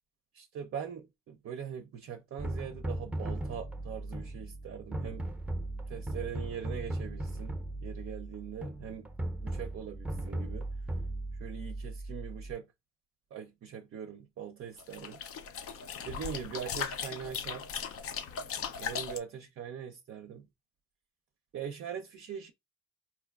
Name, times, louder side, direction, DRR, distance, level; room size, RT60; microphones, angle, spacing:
voice 1, 0.3-5.2 5.9-7.5 7.8-9.1 9.4-10.7 11.4-12.7 13.3-15.2 16.0-17.8 18.7-20.5 21.5-22.5, right 8 dB, 50° right, 0.5 m, -42 dB
sound 1, 2.4-12.5, right 1 dB, 5° right, 0.6 m, -37 dB
sound 2, 14.8-19.2, left 7 dB, 50° left, 0.4 m, -38 dB
4.4 x 2.3 x 2.3 m
cardioid pair, 90°, 30 cm